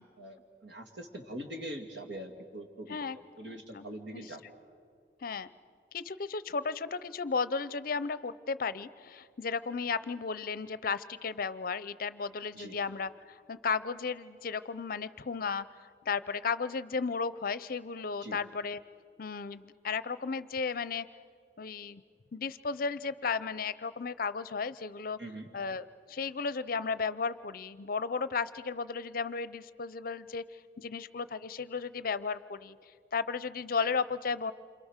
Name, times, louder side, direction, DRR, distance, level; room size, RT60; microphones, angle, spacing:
voice 1, 0.2-4.6 12.5-12.8 18.2-18.4 25.2-25.5, right 1 dB, 75° right, 3 dB, 2.6 m, -43 dB
voice 2, 3.5-3.9 4.1-4.2 5.2-5.5 5.9-18.8 19.2-21.1 21.6-22.0 22.3-25.2 25.5-30.4 30.8-32.8 33.1-34.5, left 5 dB, 50° left, 15 dB, 0.6 m, -34 dB
28.5 x 26.0 x 6.6 m, 2.2 s
head